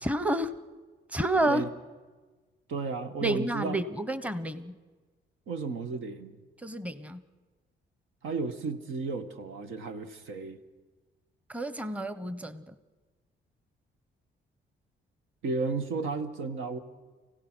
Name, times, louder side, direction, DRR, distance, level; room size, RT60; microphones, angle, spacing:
voice 1, 0.0-0.5 1.1-1.6 3.2-4.7 6.6-7.2 11.5-12.7, right 1 dB, 5° right, 13 dB, 1.1 m, -29 dB
voice 2, 2.7-3.8 5.5-6.3 8.2-10.6 15.4-16.8, right 4 dB, 80° right, 8 dB, 1.7 m, -33 dB
29.5 x 16.5 x 6.3 m, 1.3 s
cardioid pair, 90°, 20 cm